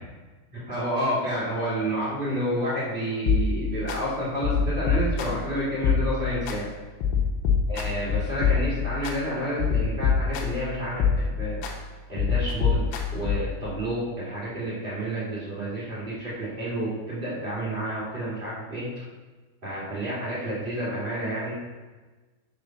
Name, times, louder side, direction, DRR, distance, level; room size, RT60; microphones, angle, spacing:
voice 1, 0.5-6.7 7.7-11.6 12.1-12.9 13.1-18.9 19.6-21.5, right 1 dB, 45° right, -9 dB, 0.6 m, -30 dB
sound 1, 3.3-4.0 4.4-5.5 5.8-6.6 7.0-9.2 9.6-10.7 11.0-11.8 12.2-13.6, left 5 dB, 85° left, 3.5 m, -25 dB
7.7 x 5.1 x 5.8 m, 1.3 s
omnidirectional pair, 5.8 m